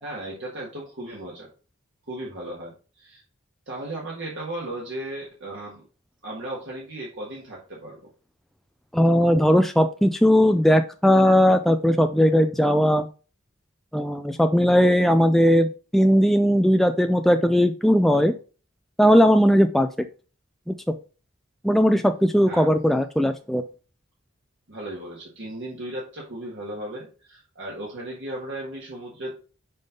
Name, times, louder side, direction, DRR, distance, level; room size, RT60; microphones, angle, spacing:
voice 1, 0.0-1.5 2.0-3.2 3.7-5.8 6.2-8.1 22.5-22.7 24.7-29.4, right 1 dB, 55° right, -4 dB, 1.7 m, -36 dB
voice 2, 8.9-13.1 13.9-18.3 19.0-19.9 20.7-20.8 21.6-23.6, equal, ahead, 7 dB, 0.3 m, -18 dB
5.4 x 5.3 x 3.8 m, 0.35 s
head